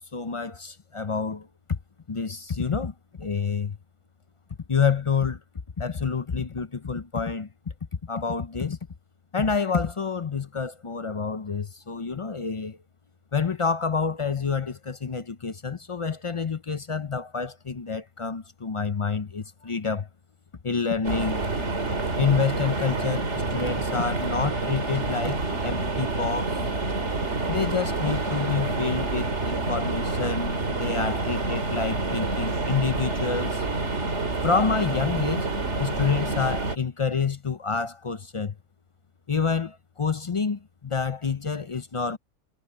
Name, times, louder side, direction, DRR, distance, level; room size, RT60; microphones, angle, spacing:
voice 1, 0.1-1.8 2.1-3.8 4.7-5.4 5.8-7.5 8.0-8.8 9.3-12.8 13.3-20.1 20.6-21.4 22.2-26.6 27.5-33.7 34.4-35.5 35.8-38.5 39.3-42.2, left 5 dB, 45° left, 0.4 m, -28 dB
sound 1, 21.0-36.8, right 2 dB, 50° right, 2.9 m, -28 dB
omnidirectional pair, 1.5 m